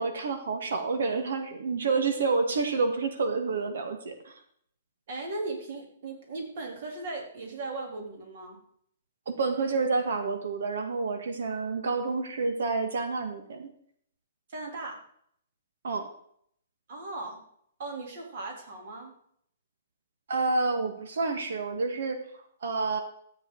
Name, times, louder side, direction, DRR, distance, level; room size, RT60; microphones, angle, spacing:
voice 1, 0.0-4.3 9.3-13.7 15.8-16.1 20.3-22.2 22.6-23.0, right 4 dB, 75° right, 7 dB, 1.6 m, -29 dB
voice 2, 5.1-8.6 14.5-15.0 16.9-17.4 17.8-19.1, right 2 dB, 50° right, 2 dB, 3.2 m, -37 dB
13.5 x 8.3 x 3.9 m, 0.65 s
hypercardioid pair, 170°, 0 cm